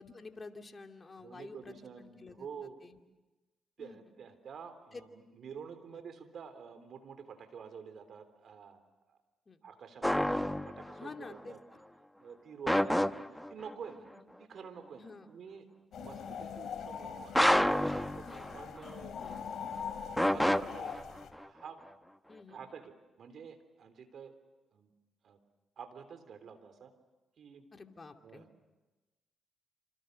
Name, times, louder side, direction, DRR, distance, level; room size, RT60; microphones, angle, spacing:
voice 1, 0.0-2.5 2.8-3.0 3.8-4.0 4.9-5.0 5.9-6.0 9.5-9.6 11.0-11.5 13.9-14.2 14.9-15.3 18.2-18.4 19.2-19.4 22.3-22.6 27.7-28.5, left 3 dB, 35° left, 5 dB, 2.7 m, -49 dB
voice 2, 1.2-2.8 3.8-8.8 9.1-9.2 9.6-11.6 12.2-14.1 14.4-15.7 15.9-17.3 17.7-19.2 20.3-21.1 21.4-21.9 22.5-24.3 24.7-24.9 25.2-25.4 25.8-26.9 27.4-27.7 28.2-28.5, right 6 dB, 65° right, 9 dB, 3.5 m, -49 dB
sound 1, 10.0-11.1 12.7-13.7 17.3-18.9 20.2-21.4, left 1 dB, 5° left, 1.0 m, -29 dB
sound 2, 15.9-21.3, left 7 dB, 65° left, 3.2 m, -43 dB
27.0 x 27.0 x 6.7 m, 1.1 s
supercardioid pair, 55°, 0 cm